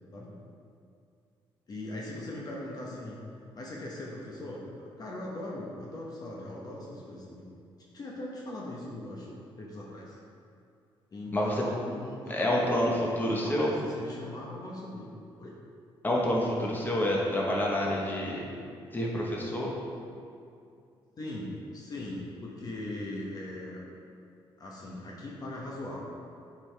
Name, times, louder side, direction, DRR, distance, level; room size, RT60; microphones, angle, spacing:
voice 1, 1.7-3.2 3.5-7.5 7.9-10.2 11.1-12.9 13.3-15.1 15.4-15.6 21.2-23.8 24.6-26.0, left 1 dB, 40° left, -3 dB, 1.0 m, -40 dB
voice 2, 11.3-11.6 12.3-13.7 16.0-18.5 18.9-19.7, left 1 dB, 20° left, -3 dB, 1.2 m, -28 dB
8.4 x 4.8 x 3.4 m, 2.4 s
cardioid pair, 100°, 10 cm